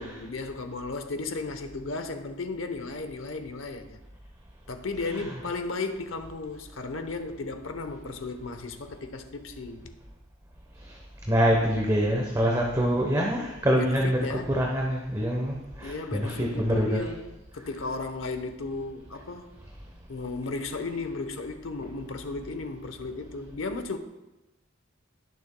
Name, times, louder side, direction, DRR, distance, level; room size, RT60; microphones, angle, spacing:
voice 1, 0.0-4.0 4.7-9.9 13.7-14.6 15.8-19.5 20.1-24.0, left 3 dB, 70° left, 0.8 m, -35 dB
voice 2, 11.3-17.0, equal, 15° right, 0.9 m, -25 dB
18.0 x 6.9 x 2.2 m
head